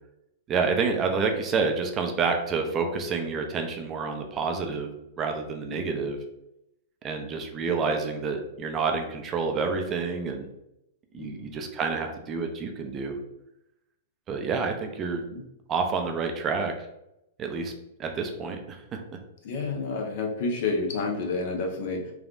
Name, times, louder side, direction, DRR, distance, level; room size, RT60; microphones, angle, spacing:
voice 1, 0.5-6.2 7.0-10.5 11.1-13.2 14.3-15.2 15.7-16.7 17.4-17.7 18.0-19.0, right 4 dB, 30° right, 4 dB, 0.4 m, -28 dB
voice 2, 11.2-11.6 15.3-15.4 19.4-22.1, left 3 dB, 60° left, 1 dB, 0.7 m, -30 dB
3.4 x 2.3 x 2.5 m, 0.85 s
hypercardioid pair, 120°, 0 cm